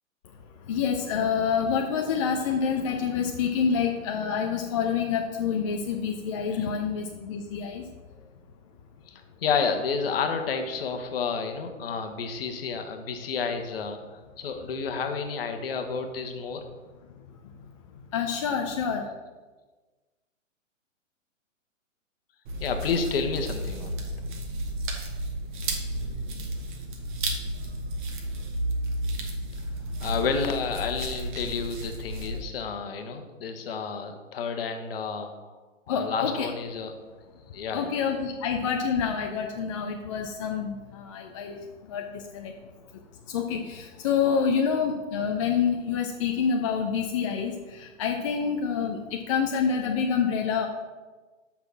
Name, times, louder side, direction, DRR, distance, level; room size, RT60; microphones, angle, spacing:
voice 1, 0.4-7.8 18.1-19.1 35.9-36.5 37.7-42.5 43.3-50.7, left 6 dB, 25° left, 2 dB, 0.5 m, -27 dB
voice 2, 9.1-16.6 22.6-23.9 30.0-35.5 35.9-36.9 37.5-38.0, left 5 dB, 50° left, 6 dB, 1.2 m, -30 dB
sound 1, 22.4-32.4, right 1 dB, 40° right, 1.3 m, -32 dB
6.5 x 5.9 x 5.9 m, 1.3 s
figure-of-eight pair, 120°, 39 cm